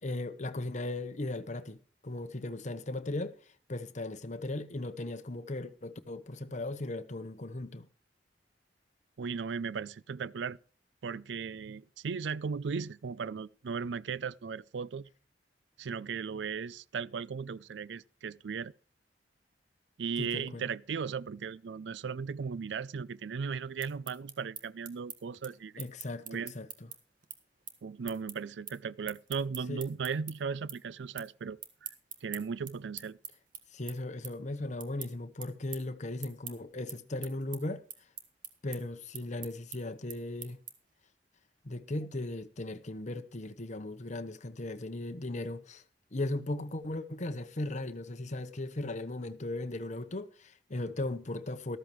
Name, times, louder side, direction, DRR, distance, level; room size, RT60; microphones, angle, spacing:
voice 1, 0.0-3.4 3.7-7.9 20.2-20.6 25.8-26.7 29.7-29.8 33.7-37.8 38.6-40.6 41.6-45.8 46.1-51.8, left 2 dB, 45° left, 0.9 m, -37 dB
voice 2, 9.2-10.6 11.0-15.1 15.8-18.7 20.0-25.7 26.3-26.5 27.8-31.6 32.2-33.2, right 5 dB, 80° right, 0.4 m, -37 dB
sound 1, 23.6-30.3 30.7-31.3 31.6-41.0, right 9 dB, 50° right, 1.7 m, -45 dB
13.5 x 13.5 x 3.1 m
head